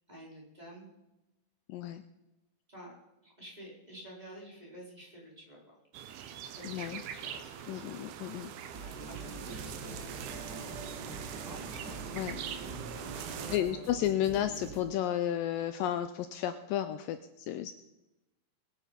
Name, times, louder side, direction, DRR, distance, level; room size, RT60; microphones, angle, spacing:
voice 1, 0.1-0.9 2.7-2.9 3.2-5.8 6.6-8.0 8.8-11.0 11.3-12.0 13.2-13.8, equal, 10° right, -3 dB, 4.0 m, -50 dB
voice 2, 1.7-2.0 6.6-7.0 7.7-8.5 12.1-12.4 13.2-17.7, left 11 dB, 90° left, 10 dB, 1.9 m, -33 dB
sound 1, 5.9-13.6, right 9 dB, 75° right, 2.8 m, -43 dB
sound 2, 8.7-14.8, right 3 dB, 40° right, 1.6 m, -44 dB
21.5 x 9.9 x 5.3 m, 1.0 s
omnidirectional pair, 4.7 m